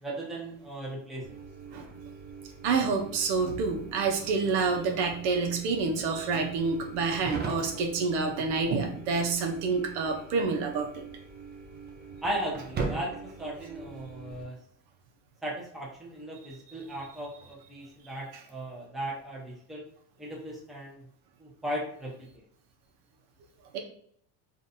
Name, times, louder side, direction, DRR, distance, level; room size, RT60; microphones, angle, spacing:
voice 1, 0.0-1.3 12.2-14.6 15.4-19.8 20.2-21.0 21.4-22.3, right 1 dB, ahead, -4 dB, 0.8 m, -37 dB
sound 1, 1.2-14.4, right 4 dB, 20° right, 0.4 m, -41 dB
voice 2, 2.6-11.0 23.7-23.8, right 4 dB, 80° right, 2 dB, 0.9 m, -28 dB
3.8 x 2.7 x 2.7 m, 0.65 s
cardioid pair, 135°, 49 cm